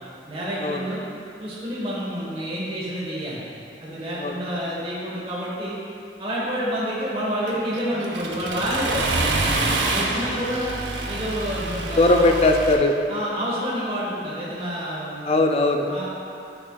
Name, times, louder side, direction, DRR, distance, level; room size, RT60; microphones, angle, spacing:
voice 1, 0.3-1.0 1.4-3.4 3.8-5.8 6.2-10.7 11.1-12.3 13.1-15.3 15.9-16.1, equal, 30° right, -7 dB, 1.1 m, -28 dB
Accelerating revving vroom, 7.5-12.7, right 2 dB, 85° right, 0.7 m, -27 dB
voice 2, 12.0-12.9 15.3-15.8, left 2 dB, 35° left, 4 dB, 0.3 m, -18 dB
8.4 x 5.2 x 2.2 m, 2.6 s
head